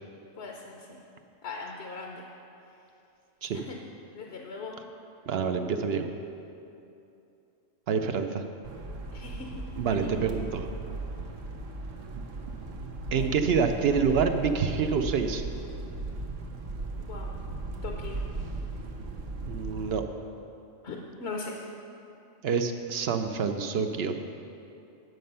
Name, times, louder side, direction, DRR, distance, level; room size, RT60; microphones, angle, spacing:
voice 1, 0.4-0.9 1.4-2.2 3.5-3.8 4.1-4.8 9.1-9.5 9.9-10.2 13.1-13.3 17.1-17.4 17.8-18.2 20.8-21.6, left 3 dB, 60° left, 0 dB, 0.9 m, -39 dB
voice 2, 5.3-6.1 7.9-8.4 9.8-10.7 13.1-15.4 19.5-20.0 22.4-24.1, right 6 dB, 60° right, 7 dB, 0.7 m, -27 dB
sound 1, 8.6-20.0, right 2 dB, 80° right, 1.2 m, -37 dB
9.4 x 7.6 x 5.4 m, 2.7 s
omnidirectional pair, 1.3 m